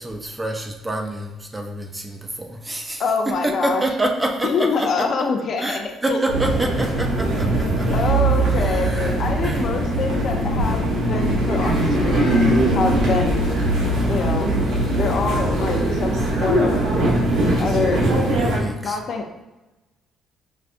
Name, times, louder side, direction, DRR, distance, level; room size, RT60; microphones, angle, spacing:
voice 1, 0.0-5.1 5.6-8.1 8.5-9.1 9.4-9.6 18.1-19.0, right 1 dB, 15° right, 3 dB, 0.4 m, -27 dB
voice 2, 3.0-3.8 4.4-6.2 7.9-13.4 14.1-14.5 14.9-16.8 17.6-18.0 18.8-19.3, left 5 dB, 55° left, 3 dB, 0.5 m, -25 dB
sound 1, 6.3-18.6, right 1 dB, 90° right, 0.9 m, -20 dB
4.9 x 2.3 x 2.5 m, 1.0 s
cardioid pair, 115°, 0 cm